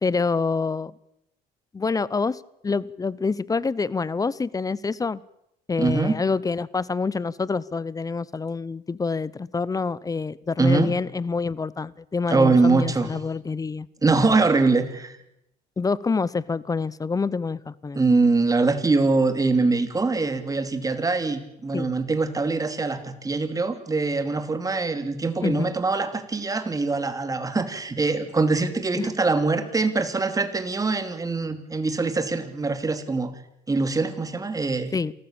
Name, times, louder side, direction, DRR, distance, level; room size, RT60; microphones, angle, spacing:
voice 1, 0.0-0.9 1.7-5.2 5.7-13.9 15.8-18.0 21.7-21.9 25.4-25.8 29.0-29.1 34.9-35.1, left 4 dB, 20° left, 21 dB, 0.7 m, -27 dB
voice 2, 5.8-6.2 10.6-10.9 12.3-13.1 14.0-15.2 17.9-33.3 33.7-34.9, right 3 dB, 20° right, 9 dB, 2.7 m, -23 dB
27.5 x 14.0 x 8.8 m, 0.81 s
cardioid pair, 110°, 17 cm